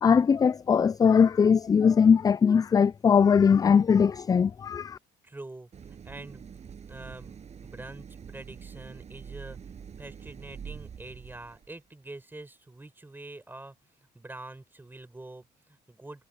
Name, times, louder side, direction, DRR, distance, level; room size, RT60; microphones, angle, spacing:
voice 1, 0.0-5.0, left 6 dB, 20° left, 0.3 m, -21 dB
voice 2, 5.2-6.4 6.9-13.8 14.1-16.3, right 2 dB, 10° right, 7.2 m, -45 dB
Idling, 5.7-11.8, right 7 dB, 40° right, 7.6 m, -45 dB
cardioid pair, 110°, 17 cm